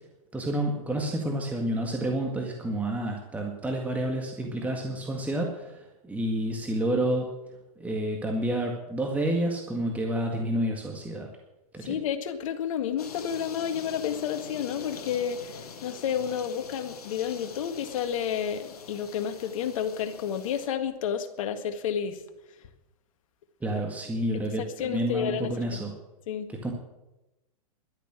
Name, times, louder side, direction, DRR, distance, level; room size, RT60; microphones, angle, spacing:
voice 1, 0.3-7.3 7.8-11.3 11.7-12.0 23.6-25.9 26.5-26.7, right 1 dB, 10° right, 1 dB, 1.9 m, -29 dB
voice 2, 11.8-22.2 24.8-25.8 26.3-26.5, left 8 dB, 60° left, 8 dB, 1.9 m, -31 dB
sound 1, 13.0-20.7, left 5 dB, 85° left, 1.6 m, -44 dB
12.0 x 10.5 x 9.0 m, 0.99 s
hypercardioid pair, 120°, 19 cm